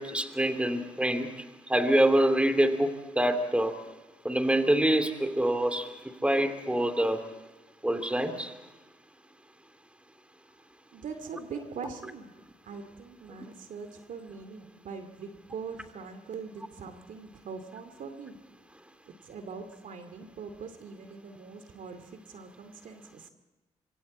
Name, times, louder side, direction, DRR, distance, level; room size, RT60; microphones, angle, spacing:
voice 1, 0.0-1.4 1.7-3.7 4.2-5.9 6.2-7.2 7.8-8.5, right 1 dB, 10° right, 8 dB, 2.9 m, -25 dB
voice 2, 10.9-12.3 12.6-18.4 19.1-23.3, right 5 dB, 65° right, 7 dB, 2.3 m, -42 dB
25.0 x 24.5 x 4.3 m, 1.1 s
supercardioid pair, 60°, 14 cm